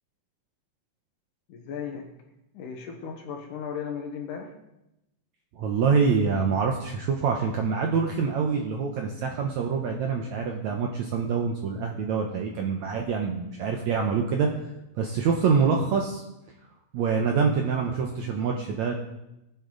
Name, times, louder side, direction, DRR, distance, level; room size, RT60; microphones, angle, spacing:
voice 1, 1.5-2.1 2.5-4.5, left 7 dB, 65° left, 3 dB, 2.5 m, -36 dB
voice 2, 5.5-14.5 14.9-16.2 16.9-18.9, right 5 dB, 70° right, 2 dB, 1.8 m, -25 dB
18.5 x 8.7 x 3.9 m, 0.90 s
omnidirectional pair, 4.3 m